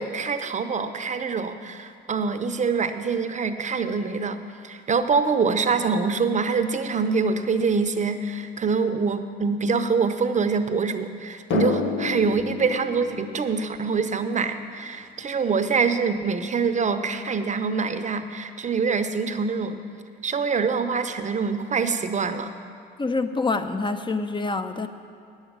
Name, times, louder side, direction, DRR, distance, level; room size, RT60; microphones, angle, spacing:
voice 1, 0.0-4.4 4.6-19.8 20.2-22.6, right 5 dB, 35° right, 8 dB, 0.7 m, -25 dB
Drum, 11.5-14.8, left 5 dB, 75° left, 0.9 m, -30 dB
voice 2, 23.0-24.9, left 3 dB, 25° left, 9 dB, 0.7 m, -26 dB
9.4 x 8.0 x 8.7 m, 2.4 s
cardioid pair, 90°, 20 cm